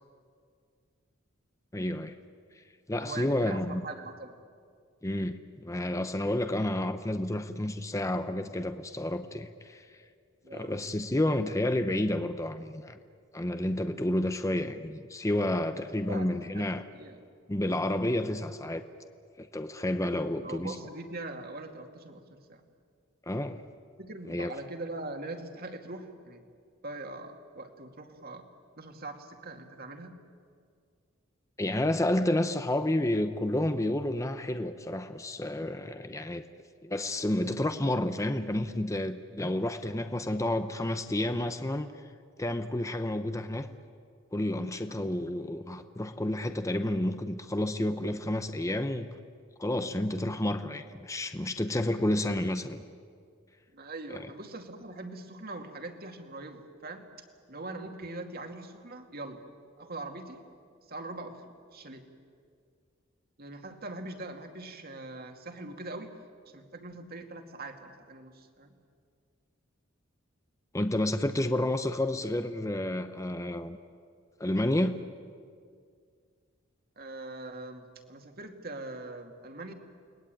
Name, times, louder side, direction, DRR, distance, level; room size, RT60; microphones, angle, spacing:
voice 1, 1.7-2.1 2.9-3.8 5.0-9.8 10.5-13.0 13.3-16.8 17.5-18.8 19.4-20.7 23.3-23.6 24.3-24.5 31.6-36.4 36.8-41.9 42.4-43.7 44.3-49.1 49.6-52.8 54.1-54.3 70.7-73.8 74.4-75.0, left 1 dB, 15° left, 9 dB, 0.8 m, -30 dB
voice 2, 3.0-4.4 10.4-10.8 15.7-16.7 16.9-17.2 20.0-22.6 24.0-26.4 26.8-28.4 28.8-30.2 44.9-45.0 53.7-57.1 57.5-59.4 59.8-60.4 60.9-62.1 63.4-66.1 66.5-68.8 77.0-79.7, right 2 dB, 50° right, 5 dB, 2.4 m, -42 dB
30.0 x 20.5 x 9.1 m, 2.1 s
head